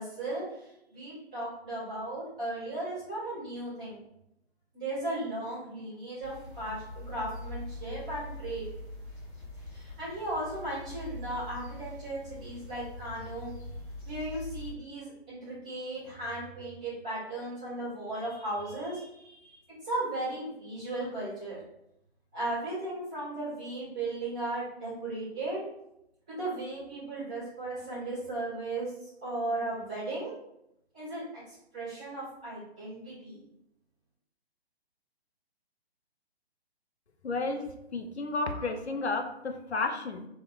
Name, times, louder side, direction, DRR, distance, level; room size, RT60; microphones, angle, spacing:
voice 1, 0.0-4.0 4.7-8.6 9.7-13.5 14.0-21.6 22.3-25.6 26.3-30.4 30.9-33.4, right 2 dB, 5° right, -17 dB, 0.4 m, -36 dB
sound 1, 6.2-14.7, left 2 dB, 55° left, 1.1 m, -43 dB
voice 2, 37.2-37.6 37.9-40.3, left 3 dB, 90° left, 5 dB, 0.5 m, -32 dB
2.8 x 2.0 x 2.4 m, 0.83 s
figure-of-eight pair, 135°, 32 cm